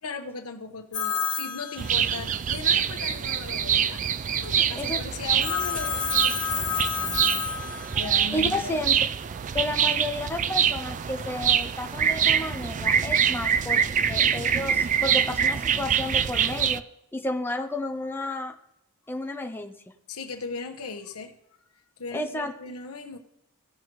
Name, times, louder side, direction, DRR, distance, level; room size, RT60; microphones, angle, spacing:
voice 1, 0.0-4.0 4.4-6.9 7.9-8.8 20.1-21.3 22.0-23.2, left 4 dB, 75° left, 4 dB, 1.2 m, -38 dB
Telephone, 0.9-2.5 5.4-8.2, left 7 dB, 50° left, 1.2 m, -30 dB
sound 1, 1.8-16.8, right 8 dB, 35° right, 0.3 m, -25 dB
voice 2, 7.7-8.9 9.5-13.8 14.1-16.8 17.1-18.5 19.1-19.8 22.1-22.5, left 1 dB, 10° left, 3 dB, 0.6 m, -32 dB
17.0 x 6.0 x 3.1 m, 0.80 s
head